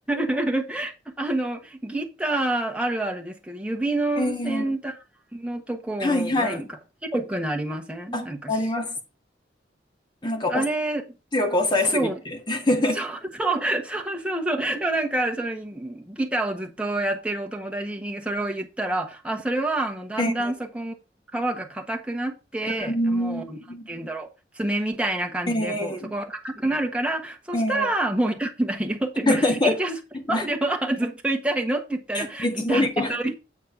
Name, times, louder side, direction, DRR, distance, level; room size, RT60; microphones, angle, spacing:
voice 1, 0.1-0.9 1.2-5.0 5.3-6.8 7.1-8.6 10.5-11.0 11.9-12.2 12.9-20.9 21.3-23.6 23.9-24.3 24.5-30.0 30.3-33.3, right 2 dB, 5° right, 1.3 m, -27 dB
voice 2, 4.2-4.7 6.0-6.7 8.1-9.0 10.2-10.6 11.3-13.0 20.2-20.5 22.8-23.9 25.5-26.1 27.5-27.9 29.3-29.8 30.1-30.5 32.1-33.1, left 1 dB, 25° left, 1.6 m, -25 dB
8.4 x 4.3 x 5.4 m
head